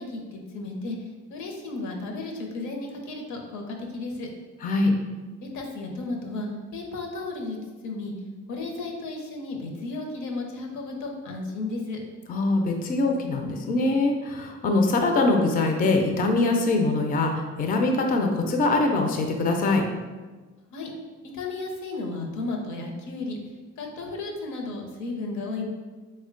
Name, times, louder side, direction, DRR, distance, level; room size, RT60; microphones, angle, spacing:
voice 1, 0.0-4.3 5.4-7.6 7.8-8.1 8.5-12.0 20.7-20.9 21.2-23.4 23.8-25.7, left 3 dB, 75° left, 1 dB, 0.7 m, -34 dB
voice 2, 4.6-4.9 12.3-19.8, left 2 dB, 30° left, 3 dB, 0.4 m, -23 dB
3.2 x 2.1 x 3.7 m, 1.3 s
cardioid pair, 90°, 30 cm